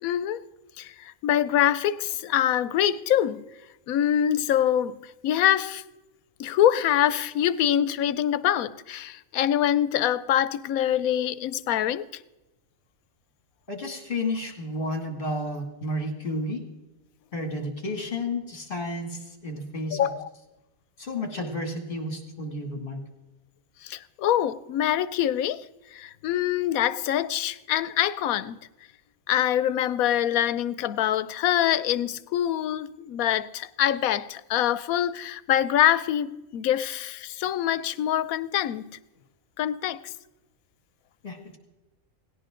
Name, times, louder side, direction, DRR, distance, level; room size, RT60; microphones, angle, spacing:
voice 1, 0.0-0.4 0.8-3.4 3.9-5.0 5.2-5.8 6.4-12.1 19.9-20.3 23.8-25.7 25.9-28.6 29.3-38.9 39.6-40.1, left 11 dB, 85° left, 1.1 m, -25 dB
voice 2, 13.7-16.6 17.3-20.1 21.0-23.0 41.2-41.6, left 1 dB, 40° left, 2.5 m, -32 dB
18.0 x 17.5 x 3.8 m
omnidirectional pair, 1.4 m